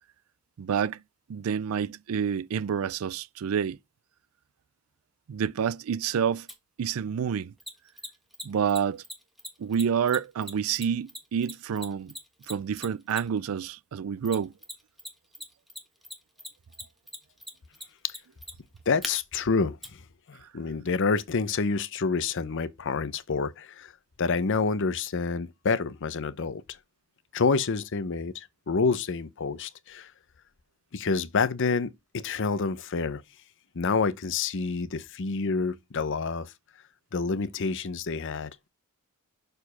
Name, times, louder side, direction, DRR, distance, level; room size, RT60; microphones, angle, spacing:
voice 1, 0.6-1.0 1.3-3.8 5.3-6.5 6.8-7.5 8.4-9.0 9.6-12.1 12.5-14.5, right 7 dB, 65° right, 0.4 m, -28 dB
Mechanisms, 6.5-6.6 7.6-13.5 14.2-15.1 15.3-19.1 19.8-19.9, equal, ahead, 1.2 m, -39 dB
voice 2, 18.9-19.8 20.3-23.9 24.2-26.6 27.3-30.1 30.9-33.2 33.7-36.5 37.1-38.6, left 4 dB, 60° left, 0.7 m, -28 dB
6.7 x 4.4 x 5.6 m
head